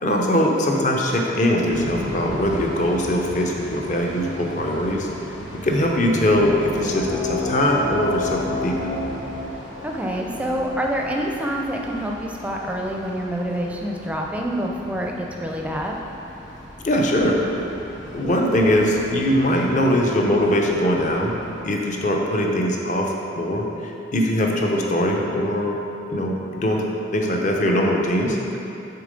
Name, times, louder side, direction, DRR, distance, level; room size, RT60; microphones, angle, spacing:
voice 1, 0.0-5.1 5.6-8.9 16.8-17.4 18.0-23.7 24.1-25.8 26.1-26.3 26.6-26.8 27.1-28.4, left 1 dB, 40° left, 0 dB, 0.7 m, -21 dB
sound 1, 1.7-21.6, equal, 80° left, 1.4 m, -38 dB
sound 2, 6.7-11.8, left 3 dB, 60° left, 1.4 m, -30 dB
voice 2, 9.8-16.0, equal, 5° right, 0 dB, 0.5 m, -27 dB
6.8 x 3.7 x 5.1 m, 2.9 s
head